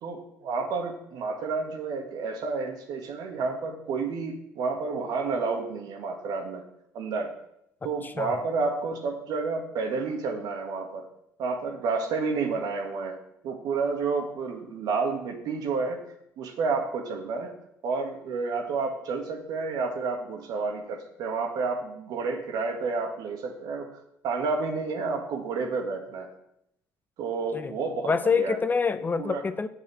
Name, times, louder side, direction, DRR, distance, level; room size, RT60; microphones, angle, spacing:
voice 1, 0.0-6.6 6.9-7.3 7.8-11.0 11.4-16.0 16.4-17.5 17.8-23.9 24.2-26.3 27.2-28.6 29.2-29.4, right 4 dB, 65° right, 5 dB, 1.9 m, -30 dB
voice 2, 8.0-8.4 27.5-27.7 28.0-29.7, left 5 dB, 25° left, 12 dB, 0.7 m, -26 dB
7.4 x 7.3 x 7.2 m, 0.78 s
hypercardioid pair, 65°, 7 cm